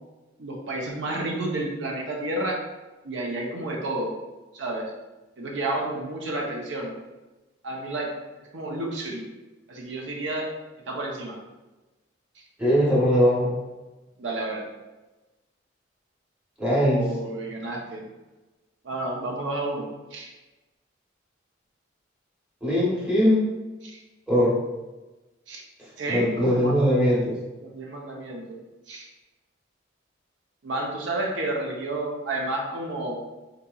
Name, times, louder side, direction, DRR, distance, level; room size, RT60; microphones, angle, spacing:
voice 1, 0.4-2.6 3.0-4.2 4.5-4.9 5.4-6.9 7.6-8.2 8.5-9.2 9.7-10.5 10.9-11.4 14.2-14.7 16.8-18.0 18.8-19.9 20.1-20.3 23.8-24.0 25.5-25.6 26.0-26.7 27.6-28.6 28.9-29.1 30.6-33.2, right 2 dB, 75° right, -1 dB, 0.6 m, -30 dB
voice 2, 12.6-13.5 16.6-17.1 22.6-23.5 24.3-24.5 25.8-27.4, equal, 5° right, -8 dB, 0.9 m, -21 dB
3.9 x 2.8 x 2.3 m, 1.1 s
head